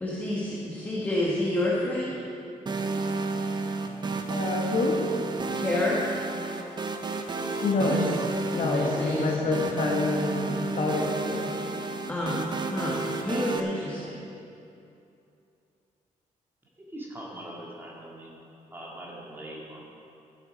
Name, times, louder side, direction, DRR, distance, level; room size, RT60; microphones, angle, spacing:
voice 1, 0.0-2.2 5.6-6.1 7.8-8.0 8.6-9.7 12.1-14.1, left 1 dB, 15° left, -5 dB, 1.4 m, -29 dB
sound 1, 2.7-13.6, right 3 dB, 35° right, 0.8 m, -32 dB
voice 2, 4.3-5.0 7.6-8.0 8.5-11.5, left 3 dB, 60° left, 0 dB, 1.4 m, -27 dB
voice 3, 16.8-18.4 18.7-19.8, right 1 dB, 15° right, -4 dB, 2.4 m, -41 dB
13.5 x 8.3 x 5.2 m, 2.7 s
cardioid pair, 140°, 14 cm